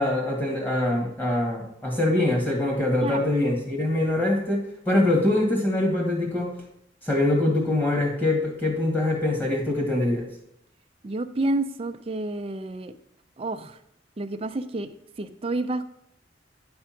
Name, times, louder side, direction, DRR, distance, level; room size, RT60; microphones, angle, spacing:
voice 1, 0.0-6.5 7.0-10.3, left 1 dB, 10° left, 0 dB, 1.7 m, -24 dB
voice 2, 11.0-12.9 13.4-13.8 14.2-14.9 15.2-15.8, right 2 dB, 30° right, 9 dB, 0.5 m, -29 dB
9.6 x 3.5 x 5.8 m, 0.75 s
head